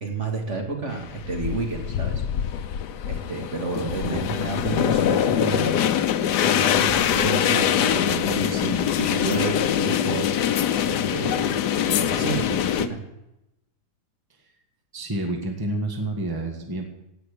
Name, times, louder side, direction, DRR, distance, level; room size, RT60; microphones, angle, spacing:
voice 1, 0.0-2.6 3.1-5.9 6.4-11.6 11.8-13.0, right 3 dB, 45° right, 2 dB, 2.4 m, -31 dB
sound 1, 0.9-12.9, left 9 dB, 75° left, 1.3 m, -23 dB
voice 2, 3.8-4.3 14.9-16.9, right 2 dB, 15° right, 2 dB, 1.7 m, -29 dB
17.0 x 6.2 x 8.6 m, 0.90 s
omnidirectional pair, 1.8 m